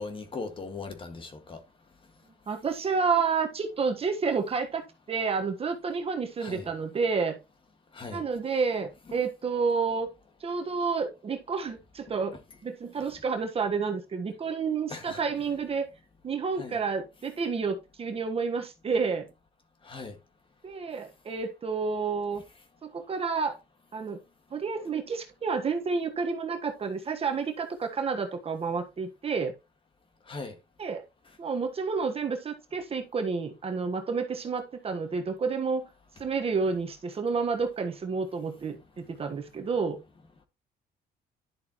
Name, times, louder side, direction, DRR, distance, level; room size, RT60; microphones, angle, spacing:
voice 1, 0.0-1.6 6.4-6.7 7.9-8.2 9.1-9.2 14.9-15.2 16.6-16.8 19.8-20.1 30.3-30.5, left 3 dB, 30° left, 2.0 m, -39 dB
voice 2, 2.5-7.4 8.1-10.1 10.4-12.3 12.6-15.8 16.2-19.3 20.6-22.4 22.8-23.6 23.9-24.2 24.5-29.5 30.8-31.0 31.4-35.9 36.2-40.0, right 5 dB, 35° right, 1.4 m, -30 dB
11.0 x 6.7 x 3.1 m
cardioid pair, 110°, 17 cm